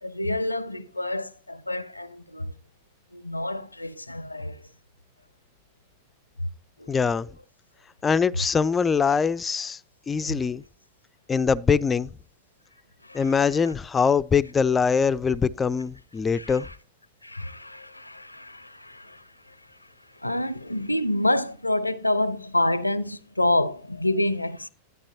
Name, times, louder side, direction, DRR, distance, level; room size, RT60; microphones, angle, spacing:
voice 1, 0.0-2.5 3.1-4.6 6.8-7.0 13.0-13.4 16.3-16.7 17.2-19.6 20.2-24.7, left 1 dB, 85° left, 0.5 m, -28 dB
voice 2, 6.9-7.3 8.0-9.8 10.1-10.6 11.3-12.1 13.1-16.7, left 6 dB, 15° left, 0.3 m, -23 dB
11.5 x 9.5 x 2.8 m
figure-of-eight pair, 90°, 0 cm